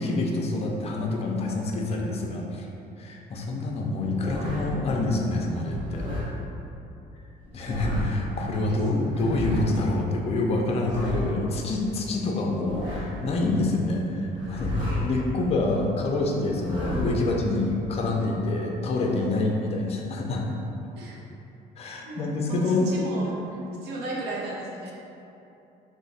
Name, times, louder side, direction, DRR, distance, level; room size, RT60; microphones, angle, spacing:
voice 1, 0.0-2.7 3.0-6.1 7.5-20.5 21.8-22.9, left 2 dB, 35° left, 0 dB, 0.5 m, -27 dB
sound 1, 3.9-4.8 5.7-6.3 7.4-8.3 9.1-9.7 10.6-11.5 12.3-13.3 14.3-15.2 16.4-17.3, left 1 dB, 30° right, 1.1 m, -32 dB
voice 2, 8.0-9.6 21.0-21.2 22.0-24.9, right 1 dB, 80° right, -5 dB, 0.8 m, -36 dB
2.9 x 2.1 x 3.9 m, 2.8 s
cardioid pair, 110°, 17 cm